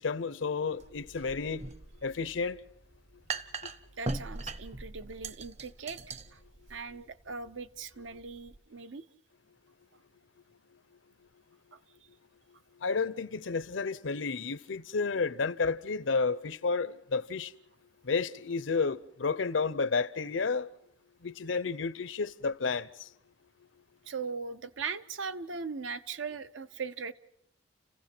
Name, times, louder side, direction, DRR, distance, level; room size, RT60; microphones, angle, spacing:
voice 1, 0.0-1.7 2.0-2.6 12.8-17.5 18.0-20.7 21.2-23.1, left 4 dB, 85° left, 0.7 m, -31 dB
sound 1, 0.8-8.6, right 3 dB, 35° right, 0.7 m, -41 dB
voice 2, 4.0-6.4 6.7-9.1 11.7-11.8 24.1-27.1, right 5 dB, 85° right, 0.8 m, -39 dB
30.0 x 16.0 x 6.0 m
head